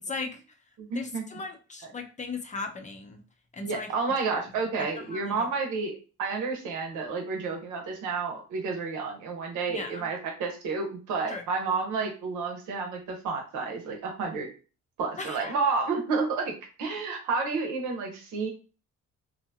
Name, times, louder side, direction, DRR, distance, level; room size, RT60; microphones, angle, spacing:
voice 1, 0.1-0.4 0.9-3.2 3.5-3.9 4.8-5.5 9.7-10.1 11.3-11.4 15.2-15.5, left 4 dB, 25° left, 4 dB, 0.5 m, -37 dB
voice 2, 0.8-1.2 3.6-14.5 15.0-16.5 16.8-18.5, right 4 dB, 90° right, 2 dB, 0.8 m, -30 dB
2.7 x 2.3 x 2.7 m, 0.35 s
cardioid pair, 90°, 30 cm